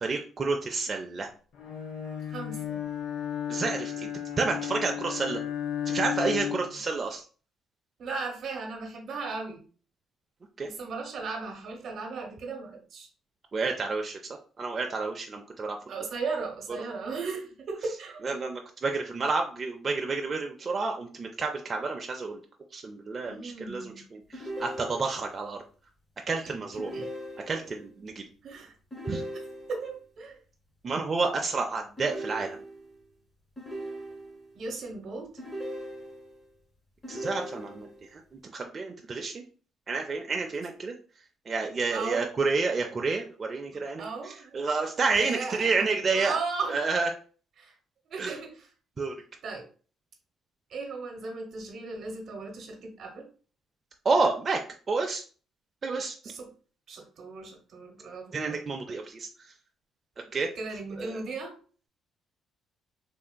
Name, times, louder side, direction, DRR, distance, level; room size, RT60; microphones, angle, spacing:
voice 1, 0.0-1.3 3.5-4.1 4.4-5.4 5.9-7.2 10.6-10.7 13.5-14.2 14.6-15.8 18.2-22.4 22.7-25.6 26.3-26.9 27.5-28.2 29.1-29.2 30.8-32.6 37.1-39.4 39.9-40.9 41.5-46.4 46.7-47.1 48.2-48.3 49.0-49.1 54.0-54.6 54.9-55.2 55.8-56.2 58.3-59.5 60.3-60.5 61.0-61.2, right 4 dB, 40° right, 2 dB, 0.4 m, -30 dB
Bowed string instrument, 1.6-6.9, left 9 dB, 80° left, 0.7 m, -34 dB
voice 2, 2.3-2.8 8.0-9.6 10.6-13.1 15.9-18.3 23.2-24.0 26.9-27.1 28.4-28.7 29.7-30.4 34.5-35.3 41.9-42.3 44.0-44.6 44.9-45.9 46.1-46.8 47.6-47.7 48.1-48.7 49.4-49.6 50.7-53.3 56.2-56.5 56.9-58.6 58.9-59.0 60.6-61.5, right 4 dB, 60° right, 2 dB, 0.9 m, -36 dB
sound 1, 24.3-25.4 26.8-27.8 28.9-29.9 32.0-33.0 33.6-34.5 35.4-36.4 37.0-38.0, right 1 dB, 20° left, 1.4 m, -39 dB
3.2 x 2.8 x 2.2 m, 0.40 s
cardioid pair, 85°, 0 cm